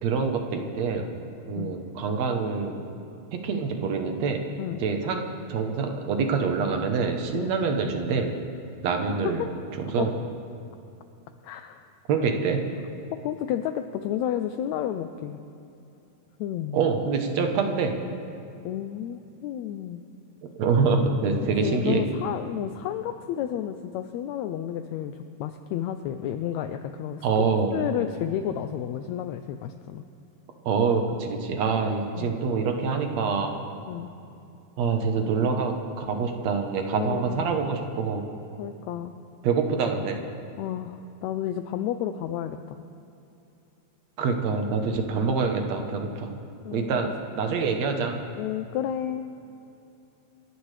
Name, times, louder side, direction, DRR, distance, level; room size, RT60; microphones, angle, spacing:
voice 1, 0.0-1.1 1.5-2.8 3.3-4.4 4.8-5.2 5.5-8.4 8.8-9.4 9.9-10.1 12.1-12.6 16.7-18.0 20.4-22.0 27.2-27.9 30.7-33.5 34.8-38.2 39.4-40.2 44.2-46.3 46.7-48.2, right 5 dB, 65° right, 4 dB, 2.1 m, -25 dB
voice 2, 11.4-11.9 13.2-15.4 16.4-16.9 18.6-20.0 21.6-27.3 27.7-30.0 32.1-32.4 33.9-34.1 36.9-37.5 38.6-39.1 40.6-42.8 45.1-45.4 46.6-47.1 47.6-47.8 48.4-49.2, left 10 dB, 80° left, 8 dB, 1.7 m, -31 dB
27.5 x 11.0 x 3.3 m, 2.7 s
omnidirectional pair, 3.5 m